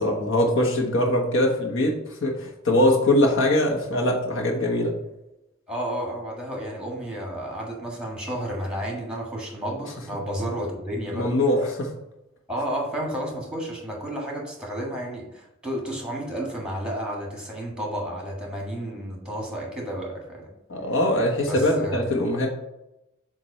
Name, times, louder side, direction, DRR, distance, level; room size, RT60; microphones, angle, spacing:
voice 1, 0.0-1.9 2.2-4.9 11.1-11.9 20.7-22.5, left 1 dB, 65° left, -1 dB, 1.2 m, -22 dB
voice 2, 5.7-11.4 12.5-20.5 21.4-22.0, equal, 5° right, -1 dB, 1.5 m, -31 dB
7.5 x 2.6 x 5.4 m, 0.89 s
head